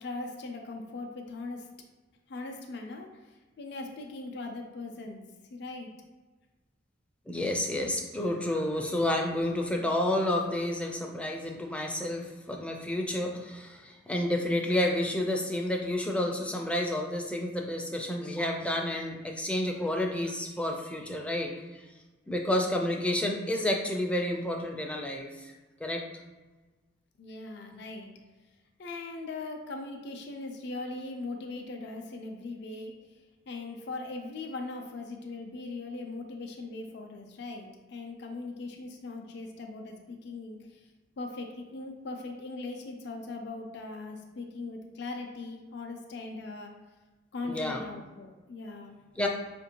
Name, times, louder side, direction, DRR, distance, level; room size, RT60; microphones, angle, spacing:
voice 1, 0.0-1.7 2.3-5.2 5.5-5.9 27.2-28.1 28.8-32.9 33.5-40.8 41.2-46.7 47.3-49.0, left 3 dB, 60° left, 2 dB, 0.5 m, -40 dB
voice 2, 7.3-21.8 22.3-25.5 25.8-26.0 47.5-47.8 49.2-49.3, left 1 dB, 5° left, 1 dB, 0.4 m, -30 dB
5.0 x 2.6 x 2.8 m, 1.2 s
head